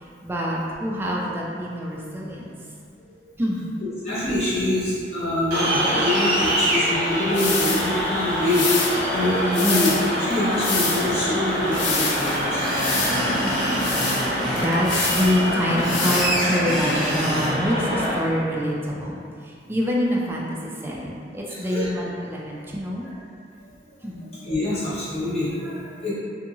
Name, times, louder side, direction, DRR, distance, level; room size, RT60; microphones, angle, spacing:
voice 1, 0.2-2.5 3.4-3.6 14.5-19.2 19.4-20.5 20.8-23.1 24.0-24.2, equal, 15° right, -4 dB, 0.3 m, -25 dB
voice 2, 4.0-12.8 13.1-14.6 21.5-21.9 23.0-23.1 24.1-26.1, left 1 dB, 35° left, -11 dB, 1.0 m, -25 dB
sound 1, 5.5-18.1, equal, 50° right, 1.0 m, -26 dB
sound 2, 7.3-16.6, left 3 dB, 75° left, 0.4 m, -28 dB
Screech, 12.2-14.7 15.6-17.5, equal, 5° left, 0.8 m, -27 dB
2.7 x 2.6 x 2.6 m, 2.2 s
head